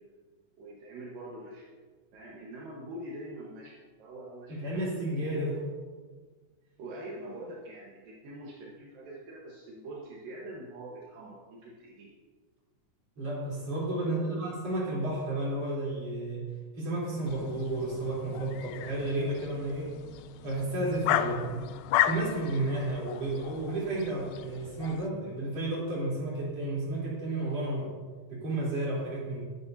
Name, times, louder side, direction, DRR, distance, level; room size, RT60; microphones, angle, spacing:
voice 1, 0.6-1.7 2.1-5.7 6.8-12.1 14.0-14.5 21.1-21.6 23.2-23.3, right 1 dB, 75° right, -4 dB, 3.1 m, -44 dB
voice 2, 4.5-5.6 13.2-16.4 16.7-19.9 20.4-21.6 22.0-27.9 28.3-29.4, right 2 dB, 45° right, -6 dB, 4.7 m, -32 dB
sound 1, 17.3-25.1, left 12 dB, 80° left, 1.9 m, -34 dB
20.5 x 9.8 x 2.8 m, 1.4 s
omnidirectional pair, 4.1 m